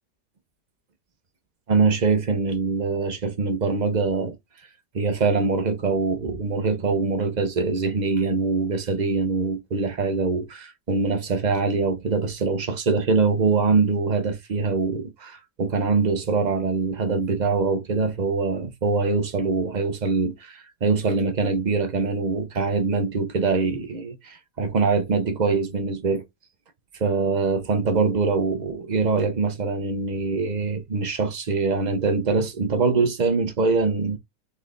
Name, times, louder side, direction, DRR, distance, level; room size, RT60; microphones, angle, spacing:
voice 1, 1.7-4.4 4.9-26.2 27.0-34.2, right 4 dB, 55° right, 0.5 m, -23 dB
4.2 x 3.4 x 3.8 m
omnidirectional pair, 1.9 m